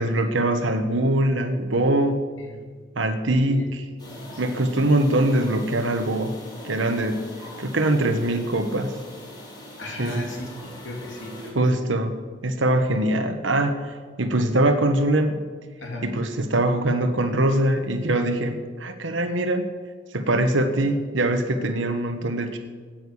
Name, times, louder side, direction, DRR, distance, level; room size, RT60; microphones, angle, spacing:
voice 1, 0.0-2.2 3.0-3.6 4.4-6.4 6.6-7.3 7.6-9.0 10.0-10.3 11.5-15.4 16.0-19.6 20.1-22.6, right 1 dB, 80° right, 6 dB, 1.2 m, -23 dB
voice 2, 4.0-4.6 7.5-7.6 9.8-11.9 15.8-16.1, left 2 dB, 75° left, 1 dB, 3.3 m, -37 dB
sound 1, 4.0-11.5, equal, 25° left, 4.4 m, -42 dB
14.0 x 9.0 x 8.4 m, 1.5 s
head